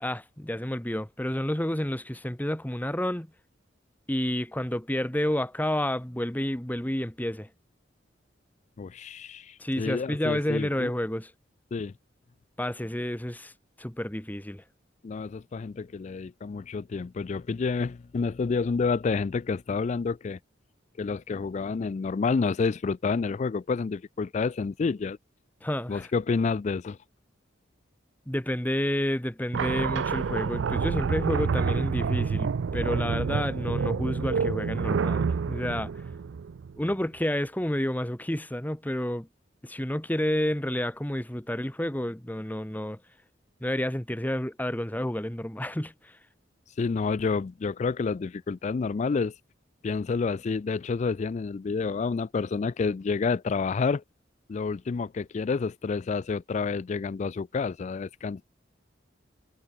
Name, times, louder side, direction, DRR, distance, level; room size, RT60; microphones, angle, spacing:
voice 1, 0.0-3.3 4.1-7.5 9.6-11.3 12.6-13.5 13.8-14.6 25.6-26.1 28.3-35.9 36.8-39.3 39.6-43.0 43.6-46.1, left 1 dB, 10° left, 1.2 m, -30 dB
voice 2, 8.8-10.9 11.7-11.9 15.0-20.4 21.0-25.2 25.9-27.0 46.8-49.3 49.8-54.0 54.5-58.4, left 4 dB, 35° left, 0.3 m, -29 dB
sound 1, 29.5-36.9, right 5 dB, 70° right, 0.4 m, -28 dB
head